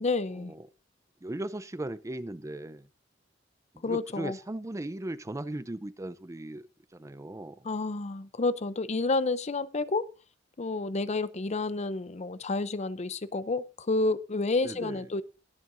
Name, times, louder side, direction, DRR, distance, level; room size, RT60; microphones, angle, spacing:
voice 1, 0.0-0.5 3.8-4.4 7.6-10.1 10.6-15.2, left 3 dB, 35° left, 0.6 m, -30 dB
voice 2, 1.2-2.9 3.7-7.6 14.6-15.1, right 1 dB, 15° right, 0.5 m, -38 dB
21.5 x 7.6 x 2.6 m
head